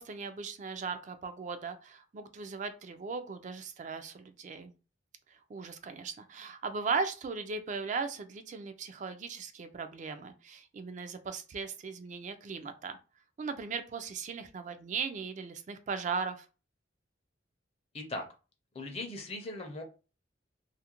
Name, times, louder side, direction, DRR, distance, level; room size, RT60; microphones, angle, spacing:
voice 1, 0.0-4.7 5.5-13.0 13.4-16.5, right 5 dB, 40° right, 9 dB, 0.3 m, -38 dB
voice 2, 17.9-18.3 18.7-19.8, left 2 dB, 30° left, 3 dB, 0.5 m, -39 dB
2.4 x 2.1 x 2.8 m, 0.33 s
head